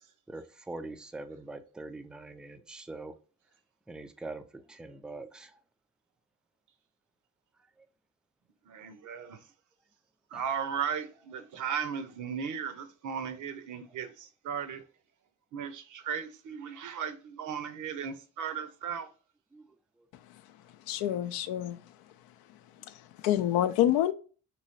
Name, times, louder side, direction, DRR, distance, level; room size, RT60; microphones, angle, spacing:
voice 1, 0.3-3.2 3.9-5.6 7.6-7.9 10.3-10.4 19.5-20.1, right 2 dB, ahead, 0.3 m, -44 dB
voice 2, 8.7-9.4 10.3-14.8 15.5-19.1, right 7 dB, 50° right, 0.7 m, -36 dB
voice 3, 20.9-21.8 22.8-24.1, left 12 dB, 65° left, 0.5 m, -28 dB
3.0 x 3.0 x 2.7 m
hypercardioid pair, 45°, 39 cm